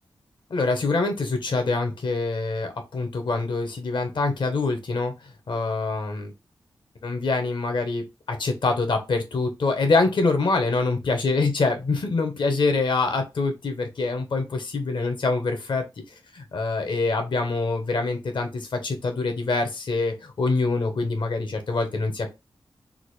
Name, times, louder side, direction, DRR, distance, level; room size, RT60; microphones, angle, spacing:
voice 1, 0.5-6.3 7.0-15.8 16.3-22.3, left 3 dB, 70° left, 6 dB, 0.9 m, -25 dB
3.7 x 2.1 x 3.1 m, 0.24 s
cardioid pair, 50°, 9 cm